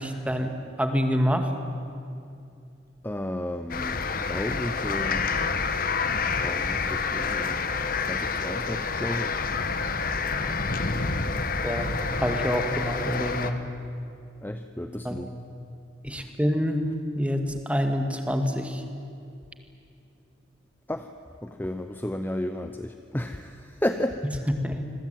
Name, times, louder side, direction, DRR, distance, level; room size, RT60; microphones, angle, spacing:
voice 1, 0.0-1.5 11.6-11.9 12.2-13.6 15.0-15.2 16.0-16.9 17.1-18.8 24.5-24.8, equal, 5° right, 5 dB, 2.2 m, -26 dB
voice 2, 3.0-4.0 4.3-5.2 6.4-7.6 8.1-9.3 14.4-15.3 20.9-21.1 21.4-23.6 23.8-24.2, left 1 dB, 10° left, 8 dB, 0.8 m, -32 dB
sound 1, 3.7-13.5, left 4 dB, 50° left, 1.3 m, -28 dB
26.5 x 22.0 x 9.2 m, 2.5 s
head